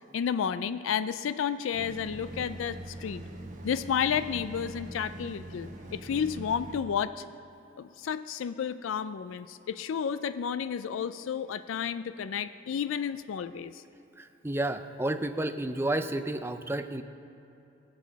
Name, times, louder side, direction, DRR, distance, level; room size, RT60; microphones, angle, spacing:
voice 1, 0.1-3.2 3.6-7.2 7.8-13.8, left 7 dB, 80° left, 14 dB, 0.4 m, -31 dB
sound 1, 1.7-6.8, right 1 dB, 40° right, 1.1 m, -43 dB
voice 2, 14.2-17.0, right 1 dB, 10° right, 8 dB, 0.4 m, -31 dB
20.5 x 7.2 x 5.2 m, 3.0 s
head